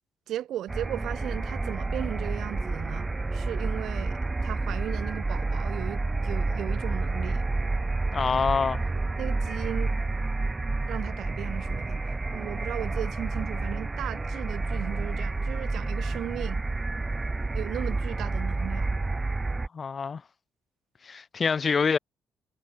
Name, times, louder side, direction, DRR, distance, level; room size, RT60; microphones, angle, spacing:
voice 1, 0.3-7.5 9.2-9.9 10.9-12.0 12.3-16.6 17.5-19.0, right 12 dB, 75° right, 4.2 m, -36 dB
sound 1, 0.7-19.7, right 3 dB, 20° right, 0.5 m, -29 dB
voice 2, 8.1-8.8 19.7-20.2 21.0-22.0, left 5 dB, 40° left, 0.4 m, -26 dB
cardioid pair, 90°, 0 cm